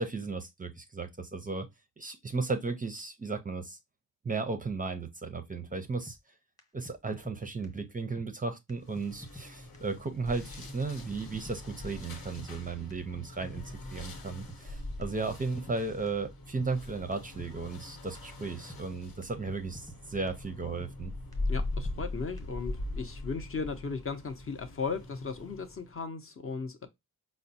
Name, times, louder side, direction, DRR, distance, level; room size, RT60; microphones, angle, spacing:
voice 1, 0.0-1.7 2.0-3.8 4.2-6.2 6.7-13.6 13.9-21.1, right 4 dB, 25° right, 0.5 m, -35 dB
sound 1, 6.1-6.2 6.6-6.7 6.9-7.4 7.6-7.7 8.2-8.3 8.7-8.8 9.0-9.5 9.7-9.8 10.3-10.4 10.8-10.9 11.1-11.6 11.9-12.0 12.4-12.5 12.9-13.7 14.0-14.1 14.5-14.6 15.0-15.1 15.3-15.8 16.1-16.2 16.6-16.7 17.1-17.2 17.4-17.9 18.2-18.3 18.7-18.8 19.2-19.3 19.5-20.0 20.3-20.4 20.8-20.9 21.3-21.4 21.6-22.1 22.4-22.5, right 1 dB, 10° left, 0.9 m, -47 dB
sound 2, 8.8-26.0, left 2 dB, 85° left, 1.1 m, -41 dB
voice 2, 21.5-26.9, left 5 dB, 40° left, 0.6 m, -36 dB
4.8 x 2.0 x 2.6 m
wide cardioid pair, 135°, 35 cm